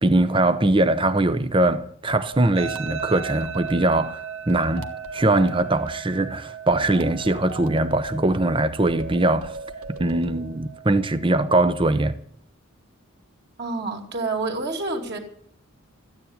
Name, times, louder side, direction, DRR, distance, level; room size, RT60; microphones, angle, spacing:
voice 1, 0.0-9.5 10.0-12.2, right 2 dB, 25° right, 0.8 m, -21 dB
sound 1, 2.3-3.9 4.5-6.0 6.7-8.2 8.9-10.4, right 2 dB, 85° right, 1.4 m, -38 dB
sound 2, 2.6-11.6, right 8 dB, 65° right, 1.6 m, -38 dB
voice 2, 13.6-15.2, right 3 dB, 50° right, 2.6 m, -28 dB
14.5 x 9.6 x 9.5 m
head